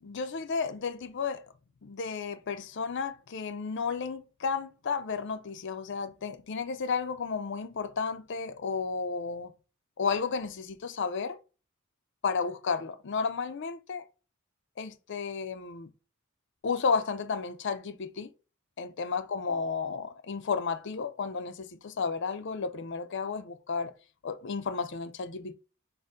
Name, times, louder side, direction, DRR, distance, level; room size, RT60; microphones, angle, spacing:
voice 1, 0.0-1.4 1.8-9.5 10.0-11.4 12.2-14.0 14.8-15.9 16.6-18.3 18.8-23.9 24.2-25.5, left 5 dB, 55° left, 0.5 m, -32 dB
6.4 x 2.2 x 3.7 m
head